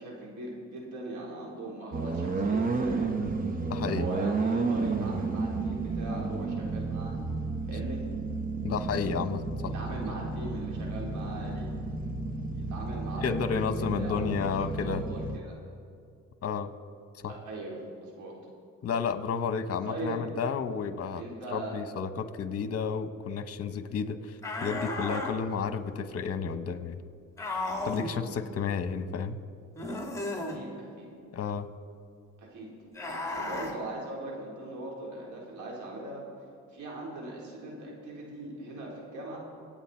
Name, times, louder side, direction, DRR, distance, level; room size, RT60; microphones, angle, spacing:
voice 1, 0.0-7.2 7.7-8.0 9.7-11.7 12.5-14.4 14.8-15.5 17.3-18.3 19.8-20.2 21.2-21.7 30.4-31.1 32.4-32.7 33.3-36.2 36.7-39.4, right 2 dB, 75° right, -3 dB, 4.3 m, -40 dB
sound 1, 1.9-15.4, right 3 dB, 30° right, 1.0 m, -32 dB
voice 2, 3.7-4.1 8.6-9.4 13.2-15.0 16.4-16.7 17.2-17.3 18.8-21.2 21.5-27.0 27.8-29.4 31.3-31.7, left 6 dB, 50° left, 11 dB, 1.1 m, -31 dB
sound 2, 24.4-25.3 27.4-28.1 29.7-30.6 32.9-33.7, left 2 dB, 10° left, 2.5 m, -34 dB
25.5 x 8.8 x 4.4 m, 2.3 s
cardioid pair, 90°, 30 cm